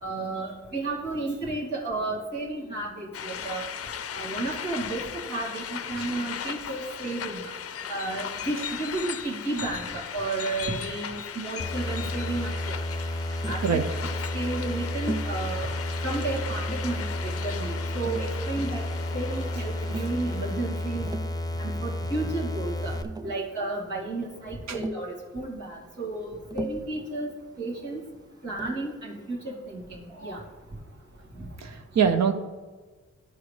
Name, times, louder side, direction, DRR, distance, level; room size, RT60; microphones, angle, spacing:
voice 1, 0.0-3.6 4.1-7.4 7.9-12.8 13.4-14.1 14.3-15.7 16.0-18.8 19.1-21.1 21.6-27.3 27.6-28.0 28.4-30.4, right 2 dB, 90° right, -6 dB, 2.2 m, -32 dB
sound 1, 3.1-21.1, left 8 dB, 50° left, 0.5 m, -37 dB
sound 2, 11.6-23.0, left 1 dB, 10° left, 0.7 m, -31 dB
Tap, 13.4-13.7 15.1-15.4 16.4-17.0 18.0-18.8 19.8-20.2 20.9-21.4 22.6-22.7 22.9-23.4 24.7-25.1 26.5-27.0 28.6-28.9, right 2 dB, 15° right, 0.3 m, -37 dB
voice 2, 31.6-32.3, right 7 dB, 60° right, 7 dB, 0.6 m, -24 dB
11.5 x 4.8 x 3.3 m, 1.4 s
supercardioid pair, 45°, 30 cm